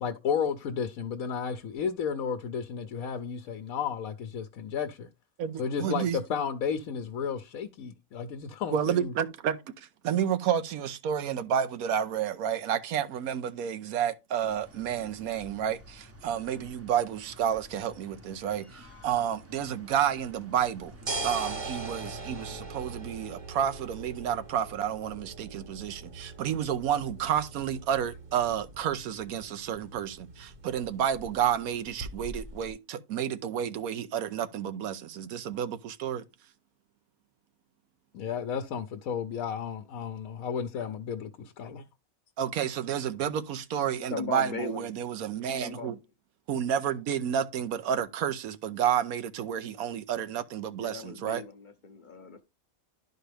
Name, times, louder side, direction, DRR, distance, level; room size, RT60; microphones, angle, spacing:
voice 1, 0.0-5.1 5.6-9.1 38.1-41.3 41.6-41.8, left 7 dB, 75° left, 1.1 m, -33 dB
voice 2, 5.4-6.2 8.7-20.9 21.2-36.2 42.4-46.0 46.5-51.4, right 9 dB, 90° right, 1.2 m, -30 dB
sound 1, 14.4-22.6, equal, 20° right, 0.4 m, -52 dB
sound 2, 20.7-32.7, right 3 dB, 40° right, 0.9 m, -41 dB
voice 3, 44.1-44.9 45.5-46.0 50.8-52.4, left 6 dB, 45° left, 0.7 m, -38 dB
11.5 x 4.5 x 3.3 m
omnidirectional pair, 1.5 m